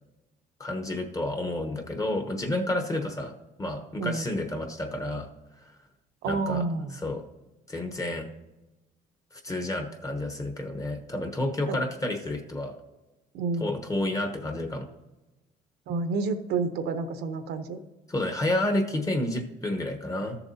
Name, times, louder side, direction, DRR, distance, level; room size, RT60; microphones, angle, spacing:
voice 1, 0.6-3.3 3.6-5.3 6.3-6.6 6.9-7.2 7.7-8.2 9.3-12.7 13.6-14.9 18.1-20.4, left 1 dB, 20° left, 4 dB, 1.0 m, -30 dB
voice 2, 6.2-6.9 11.7-11.8 13.3-13.7 15.9-17.8, right 4 dB, 80° right, 9 dB, 0.8 m, -29 dB
13.5 x 7.0 x 2.8 m, 1.1 s
cardioid pair, 110°, 17 cm